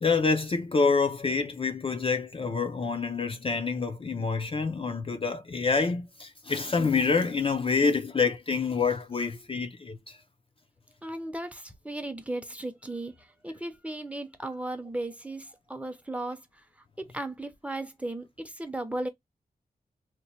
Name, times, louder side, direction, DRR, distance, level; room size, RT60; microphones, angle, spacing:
voice 1, 0.0-10.2, left 4 dB, 35° left, 0.4 m, -27 dB
voice 2, 11.0-16.4 17.0-19.1, right 1 dB, 10° right, 0.6 m, -36 dB
2.9 x 2.1 x 4.1 m
wide cardioid pair, 115°, 16 cm